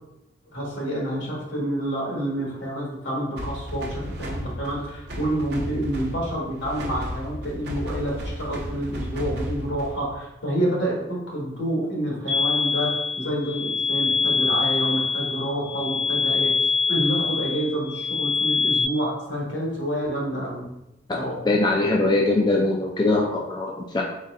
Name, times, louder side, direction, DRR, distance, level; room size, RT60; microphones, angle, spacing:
voice 1, 0.5-12.9 13.2-20.6 21.2-21.4, right 1 dB, 80° left, -4 dB, 1.5 m, -28 dB
sound 1, 3.4-10.1, equal, 60° right, 0.7 m, -34 dB
sound 2, 12.3-18.8, left 5 dB, 85° right, 0.9 m, -24 dB
voice 2, 21.5-24.0, left 2 dB, 25° left, -1 dB, 0.3 m, -22 dB
4.2 x 4.0 x 2.5 m, 0.89 s
head